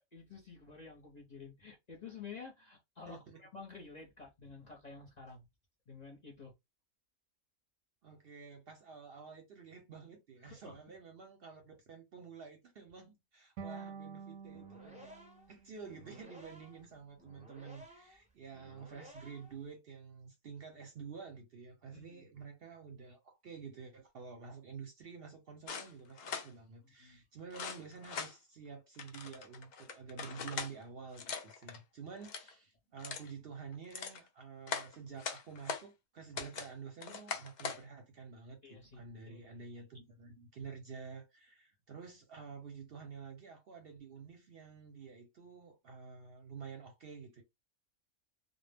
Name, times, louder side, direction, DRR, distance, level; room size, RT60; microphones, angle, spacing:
voice 1, 0.1-5.5 5.9-6.5 10.4-10.8 21.9-22.2 26.8-27.2 38.6-39.6, left 5 dB, 40° left, 0.6 m, -51 dB
voice 2, 3.1-3.4 8.0-47.4, right 5 dB, 60° right, 0.7 m, -50 dB
sound 1, 13.6-16.7, right 6 dB, 85° right, 1.0 m, -49 dB
sound 2, 14.4-19.7, left 1 dB, 10° right, 0.4 m, -57 dB
sound 3, 25.7-26.5 27.5-28.3 29.0-30.7 31.1-31.8 32.1-32.5 33.0-33.3 33.7-34.2 34.7-35.8 36.3-36.7 37.0-37.8, left 5 dB, 90° left, 0.4 m, -41 dB
2.1 x 2.1 x 3.3 m
omnidirectional pair, 1.4 m